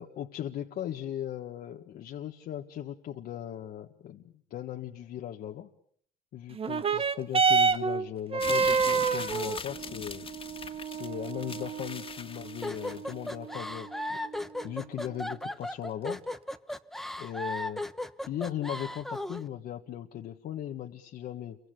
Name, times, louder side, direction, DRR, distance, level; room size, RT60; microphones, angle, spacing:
voice 1, 0.0-5.7 6.3-10.3 10.9-14.2 14.6-16.2 17.2-17.8 18.3-21.6, left 11 dB, 65° left, 2 dB, 1.7 m, -38 dB
sound 1, 6.5-15.5 16.3-16.4, right 5 dB, 35° right, 1.2 m, -30 dB
sound 2, 8.4-13.3, left 5 dB, 30° left, 2.2 m, -41 dB
sound 3, 12.6-19.4, left 1 dB, ahead, 1.1 m, -36 dB
29.5 x 24.5 x 6.9 m, 0.65 s
cardioid pair, 110°, 17 cm